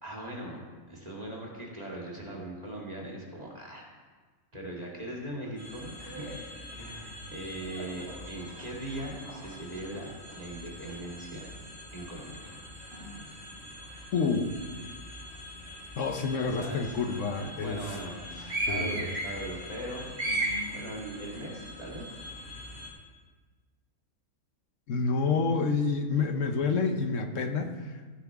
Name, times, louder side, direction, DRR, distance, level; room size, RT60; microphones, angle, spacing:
voice 1, 0.0-3.9 4.5-6.4 6.7-11.5 11.9-12.5 16.6-17.0 17.6-22.1, right 1 dB, 25° right, -3 dB, 2.3 m, -40 dB
sound 1, 5.6-22.9, right 1 dB, 45° right, 3.5 m, -39 dB
voice 2, 14.1-14.5 16.0-17.9 18.7-19.0 24.9-28.2, left 4 dB, 60° left, 6 dB, 1.2 m, -29 dB
15.5 x 9.4 x 3.6 m, 1.4 s
omnidirectional pair, 1.5 m